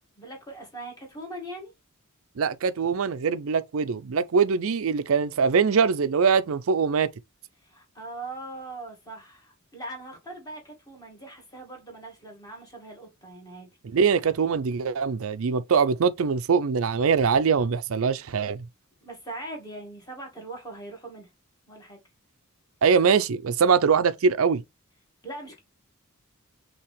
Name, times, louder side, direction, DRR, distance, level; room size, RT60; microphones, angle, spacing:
voice 1, 0.2-1.7 7.6-13.7 19.0-21.3 21.7-22.0 25.2-25.6, right 2 dB, 15° left, 2.0 m, -41 dB
voice 2, 2.4-7.1 13.8-18.6 22.8-24.6, right 6 dB, 65° right, 0.5 m, -23 dB
5.7 x 2.9 x 3.2 m
head